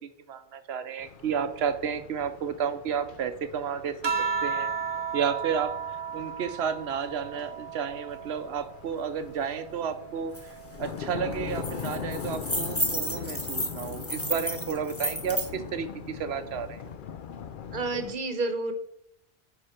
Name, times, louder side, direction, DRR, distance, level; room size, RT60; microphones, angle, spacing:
voice 1, 0.0-4.0 4.4-4.7 5.1-16.8, right 7 dB, 85° right, 11 dB, 1.0 m, -32 dB
sound 1, 1.0-18.1, left 7 dB, 60° left, 0.7 m, -41 dB
sound 2, 4.0-8.8 9.3-11.0 12.2-12.7, right 5 dB, 35° right, 0.5 m, -35 dB
sound 3, 10.3-10.4 10.8-11.0 11.3-15.5, right 1 dB, 15° left, 1.4 m, -32 dB
voice 2, 17.7-18.7, right 3 dB, 55° right, 7 dB, 1.1 m, -29 dB
10.5 x 4.7 x 4.4 m, 0.73 s
omnidirectional pair, 1.1 m